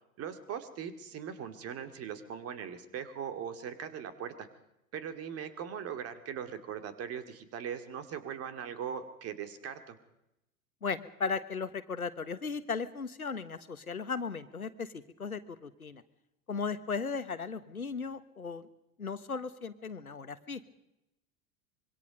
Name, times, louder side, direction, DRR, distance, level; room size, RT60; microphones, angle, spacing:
voice 1, 0.2-4.5 4.9-9.9, right 8 dB, 35° right, 9 dB, 2.5 m, -40 dB
voice 2, 10.8-16.0 16.5-18.7 19.0-20.6, left 5 dB, 85° left, 12 dB, 1.3 m, -36 dB
25.0 x 23.0 x 5.3 m, 0.87 s
figure-of-eight pair, 85°, 42 cm